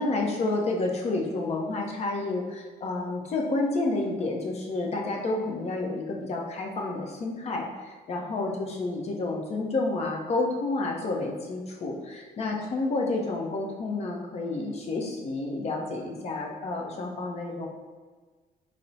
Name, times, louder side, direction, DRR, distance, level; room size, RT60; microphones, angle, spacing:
voice 1, 0.0-17.7, left 2 dB, 40° left, 0 dB, 0.6 m, -30 dB
4.3 x 2.0 x 2.6 m, 1.4 s
cardioid pair, 110°, 17 cm